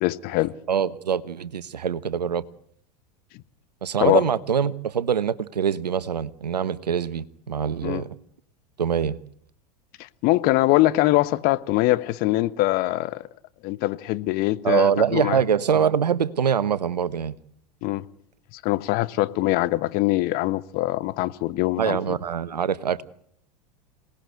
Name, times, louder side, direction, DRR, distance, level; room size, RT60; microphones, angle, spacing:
voice 1, 0.0-0.5 4.0-4.2 7.8-8.0 10.2-13.2 13.6-15.4 17.8-18.0 18.6-22.0, left 18 dB, 45° left, 1.2 m, -22 dB
voice 2, 0.7-2.4 3.8-8.1 8.8-9.2 14.6-17.3 21.8-23.0, right 7 dB, 85° right, 1.1 m, -24 dB
27.0 x 19.0 x 8.1 m
hypercardioid pair, 90°, 20 cm